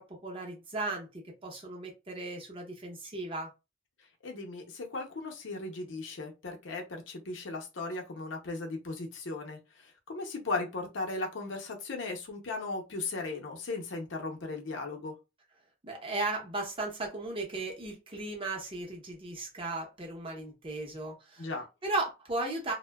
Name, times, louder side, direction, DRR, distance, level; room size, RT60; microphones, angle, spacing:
voice 1, 0.0-3.5 15.8-21.5 21.8-22.7, right 2 dB, 30° right, 0.7 m, -36 dB
voice 2, 4.2-15.1 21.4-21.6, left 3 dB, 70° left, 0.7 m, -37 dB
2.6 x 2.1 x 2.2 m
head